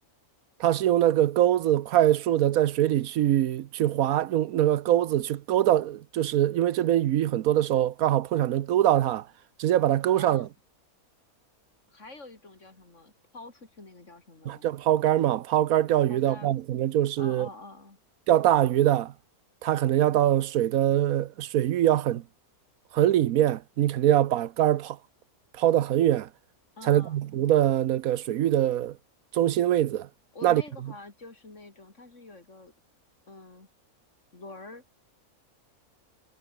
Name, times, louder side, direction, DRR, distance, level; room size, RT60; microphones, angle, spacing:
voice 1, 0.6-9.2 9.6-10.5 14.5-17.5 18.3-19.1 19.6-22.2 22.9-25.0 25.6-26.3 26.8-28.9 29.3-30.1 30.4-30.6, right 12 dB, 75° right, 1.1 m, -23 dB
voice 2, 10.1-10.5 11.9-14.7 16.1-16.5 17.2-18.0 26.8-27.2 30.3-32.7 33.3-33.7 34.3-34.8, left 3 dB, 50° left, 4.2 m, -46 dB
omnidirectional pair, 1.6 m